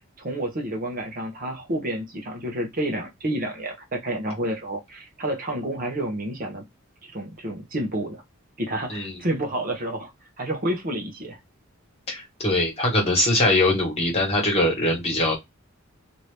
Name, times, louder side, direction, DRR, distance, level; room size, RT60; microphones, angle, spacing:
voice 1, 0.0-6.6 7.0-8.2 8.6-10.1 10.4-11.4, right 1 dB, 40° right, 0.8 m, -29 dB
voice 2, 12.1-15.3, left 1 dB, 30° left, 1.4 m, -22 dB
2.9 x 2.6 x 3.2 m
head